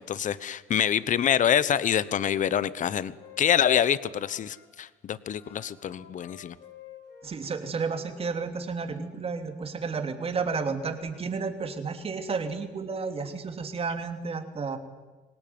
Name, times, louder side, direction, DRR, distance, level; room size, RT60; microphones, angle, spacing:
voice 1, 0.0-6.5, left 9 dB, 50° left, 17 dB, 1.1 m, -26 dB
Wind instrument woodwind instrument, 1.8-4.7 5.2-8.8, left 8 dB, 75° left, 5.8 m, -52 dB
voice 2, 7.2-14.8, right 4 dB, 35° right, 7 dB, 3.1 m, -32 dB
25.0 x 19.0 x 9.6 m, 1.2 s
cardioid pair, 110°, 17 cm